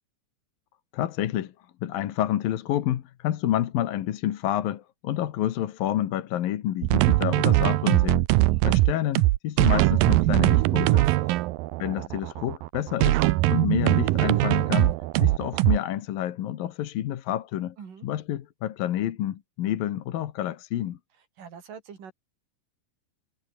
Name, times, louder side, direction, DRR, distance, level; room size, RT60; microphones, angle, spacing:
voice 1, 0.9-1.5 1.8-8.3 8.6-11.0 11.8-13.2 13.5-17.8 18.0-21.0, left 12 dB, 75° left, 3.1 m, -29 dB
sound 1, 6.8-15.8, right 18 dB, 85° right, 2.4 m, -21 dB
voice 2, 10.9-11.4 17.8-18.1 21.4-22.1, right 7 dB, 65° right, 5.2 m, -43 dB
omnidirectional pair, 4.2 m